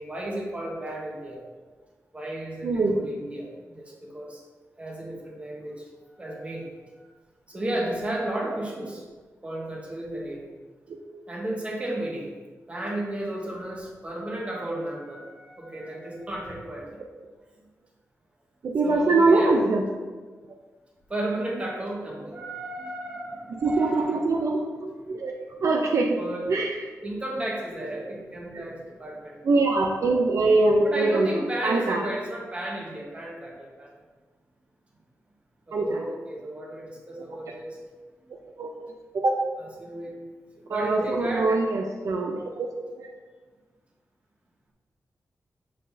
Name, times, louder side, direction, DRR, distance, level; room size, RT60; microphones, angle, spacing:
voice 1, 0.0-1.4 2.1-4.4 4.8-5.8 6.2-6.7 7.0-7.1 7.5-9.0 9.4-10.4 11.3-12.3 12.7-16.9 18.8-19.6 21.1-24.4 25.5-25.6 26.2-26.5 27.0-29.4 30.8-33.9 35.7-37.8 39.6-40.2 40.5-41.5, right 1 dB, 20° right, -2 dB, 1.2 m, -33 dB
voice 2, 2.6-2.9 18.6-19.8 23.6-25.3 25.6-26.2 26.5-26.8 28.5-28.6 29.4-31.3 31.6-32.0 35.7-36.0 38.6-38.7 39.1-39.3 40.7-42.7 43.0-43.1, right 3 dB, 65° right, 1 dB, 0.6 m, -23 dB
7.6 x 5.3 x 2.7 m, 1.4 s
wide cardioid pair, 130°, 6 cm